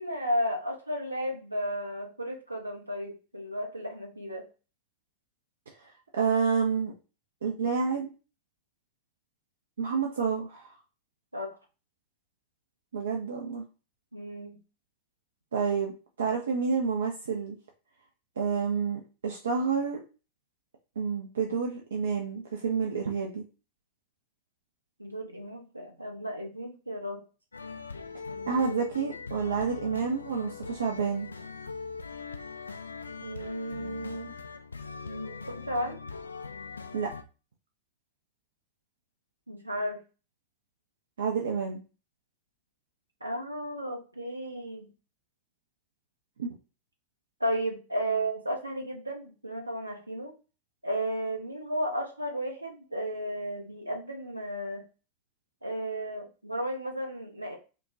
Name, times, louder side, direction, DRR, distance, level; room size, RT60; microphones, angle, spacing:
voice 1, 0.0-4.4 11.3-11.5 14.1-14.6 25.0-27.2 33.2-34.4 35.0-36.0 39.5-40.0 43.2-44.9 47.4-50.3 50.8-54.8 55.6-57.6, equal, 85° right, 2 dB, 0.8 m, -34 dB
voice 2, 5.8-6.9 7.4-8.1 9.8-10.7 12.9-13.6 15.5-15.9 16.2-17.6 18.4-20.0 21.0-23.4 28.5-31.3 36.9-37.1 41.2-41.8 46.4-46.5, right 5 dB, 65° right, 2 dB, 0.5 m, -29 dB
sound 1, 27.5-37.2, left 4 dB, 75° left, 0.4 m, -41 dB
5.1 x 2.2 x 2.6 m, 0.33 s
figure-of-eight pair, 90°, 0 cm